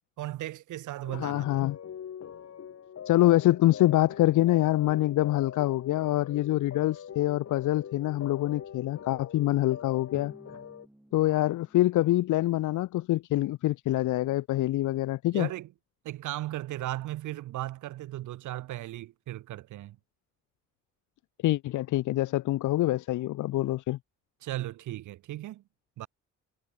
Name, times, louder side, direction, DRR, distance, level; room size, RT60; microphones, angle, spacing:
voice 1, 0.2-1.5 15.3-15.7 16.0-20.0 24.4-25.6 26.0-26.1, right 15 dB, 80° right, 1.2 m, -36 dB
sound 1, 1.0-10.9, left 8 dB, 55° left, 5.2 m, -43 dB
voice 2, 1.2-1.8 3.1-10.3 11.1-15.5 21.4-24.0, left 16 dB, 80° left, 0.9 m, -25 dB
Drum, 10.1-12.8, right 1 dB, 5° right, 2.8 m, -53 dB
cardioid pair, 90°, 30 cm